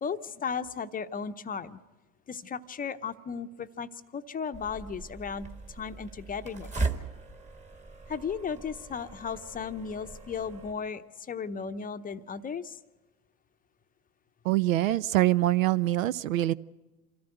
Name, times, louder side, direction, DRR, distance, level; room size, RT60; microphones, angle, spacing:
voice 1, 0.0-1.8 2.3-6.7 8.1-12.8, left 6 dB, 20° left, 10 dB, 0.7 m, -35 dB
sound 1, 4.5-10.7, right 3 dB, 20° right, 1.5 m, -38 dB
voice 2, 14.4-16.5, right 15 dB, 80° right, 19 dB, 0.6 m, -24 dB
26.0 x 14.0 x 7.9 m, 1.2 s
hypercardioid pair, 85°, 40 cm